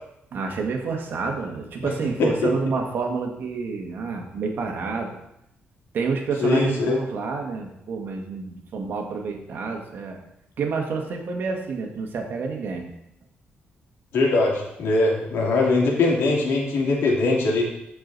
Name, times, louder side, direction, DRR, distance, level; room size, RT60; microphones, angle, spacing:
voice 1, 0.3-5.2 5.9-10.2 10.6-12.9, right 4 dB, 60° right, 2 dB, 1.6 m, -28 dB
voice 2, 2.2-2.5 6.4-7.0 14.1-17.6, left 3 dB, 80° left, -1 dB, 2.5 m, -21 dB
14.0 x 4.9 x 4.0 m, 0.81 s
cardioid pair, 150°, 4 cm